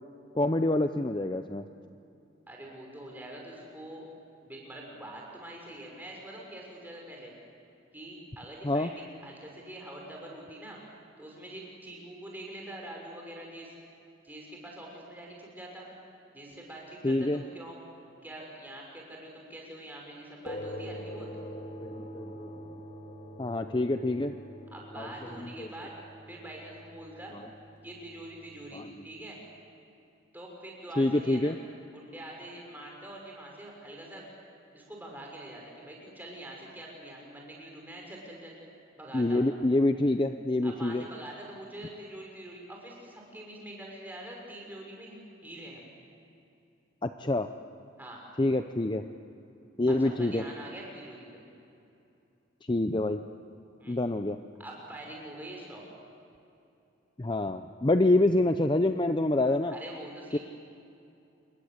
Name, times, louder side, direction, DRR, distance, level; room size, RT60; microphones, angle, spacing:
voice 1, 0.3-1.6 8.6-8.9 17.0-17.4 21.8-22.5 23.4-24.3 25.0-25.1 25.6-25.7 28.7-28.9 31.0-31.6 39.1-41.0 47.0-47.5 48.4-49.0 49.8-50.4 52.7-53.2 53.9-54.4 57.2-59.7 60.3-60.4, left 2 dB, 25° left, 8 dB, 0.6 m, -26 dB
voice 2, 2.5-4.1 4.4-7.3 7.9-10.8 11.2-13.7 14.2-15.9 16.3-17.8 18.2-21.3 24.7-25.9 26.3-27.4 27.8-29.4 30.3-31.5 31.9-34.3 34.7-38.5 38.9-39.4 40.6-45.8 48.0-48.2 49.9-51.4 53.8-54.0 54.6-55.8 59.7-60.4, right 1 dB, 10° right, -1 dB, 5.8 m, -44 dB
sound 1, 20.5-29.2, equal, 40° left, 2.2 m, -44 dB
28.0 x 21.5 x 8.0 m, 2.7 s
head